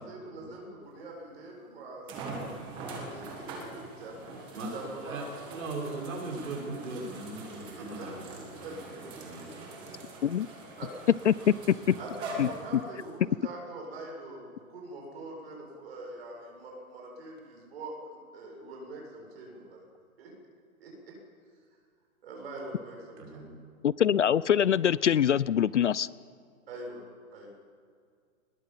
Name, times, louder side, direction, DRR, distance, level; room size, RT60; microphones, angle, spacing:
voice 1, 0.0-2.5 3.1-5.2 7.6-9.5 10.8-10.9 12.0-17.9 18.3-19.8 20.2-20.3 20.8-21.1 22.2-23.4 26.7-27.0 27.3-27.5, right 2 dB, 45° right, -1 dB, 7.4 m, -44 dB
sound 1, 1.0-1.1 2.1-13.1 13.8-13.9 17.4-17.5, right 2 dB, 10° right, 1.7 m, -43 dB
voice 2, 5.0-8.4 9.2-9.5 11.8-12.0 23.2-23.6, right 2 dB, 65° right, -1 dB, 6.8 m, -39 dB
voice 3, 11.3-11.9 12.4-12.5 23.8-26.1, left 9 dB, 55° left, 20 dB, 0.5 m, -24 dB
21.5 x 20.5 x 7.4 m, 2.1 s
hypercardioid pair, 175°, 43 cm